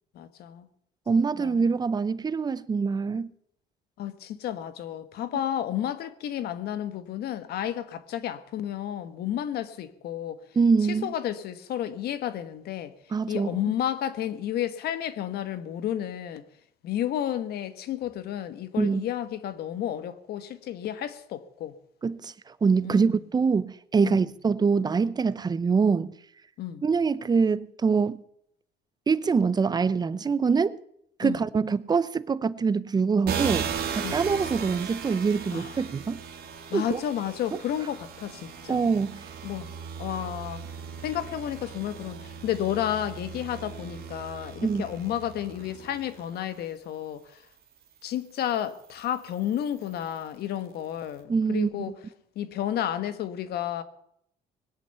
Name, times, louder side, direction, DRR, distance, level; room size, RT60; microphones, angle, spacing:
voice 1, 0.1-0.7 1.4-1.5 4.0-10.4 10.9-12.9 13.3-16.4 16.8-21.8 22.8-23.1 24.0-24.2 26.6-26.8 31.2-31.4 34.0-34.2 35.5-35.7 36.7-38.9 39.4-39.7 40.0-40.6 41.0-47.4 48.0-51.9 52.3-53.8, left 11 dB, 70° left, 1.3 m, -31 dB
voice 2, 1.1-3.3 10.6-11.1 13.1-13.7 18.8-19.0 22.0-26.1 26.8-28.2 29.1-30.8 31.2-33.7 34.0-36.2 36.7-37.0 37.5-37.6 38.7-39.2 44.6-44.9 51.3-51.7, right 5 dB, 25° right, 0.7 m, -24 dB
sound 1, 33.2-46.6 47.3-50.3, right 7 dB, 65° right, 2.6 m, -37 dB
20.5 x 8.5 x 6.9 m
cardioid pair, 110°, 17 cm